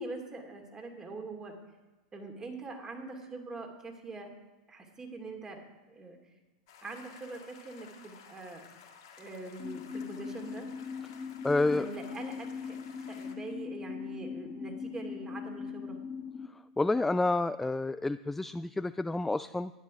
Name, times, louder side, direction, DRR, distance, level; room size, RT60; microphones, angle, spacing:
voice 1, 0.0-1.6 2.1-4.3 4.7-6.2 6.8-8.6 9.2-10.7 11.6-12.8 13.1-16.0, right 3 dB, 20° right, 3 dB, 2.5 m, -43 dB
sound 1, 6.7-13.3, left 6 dB, 60° left, 2.1 m, -54 dB
sound 2, 9.6-16.5, left 6 dB, 20° left, 1.2 m, -40 dB
voice 2, 11.4-11.9 16.5-19.7, left 2 dB, 5° left, 13 dB, 0.3 m, -29 dB
12.0 x 10.5 x 5.1 m, 1.1 s
figure-of-eight pair, 90°, 3 cm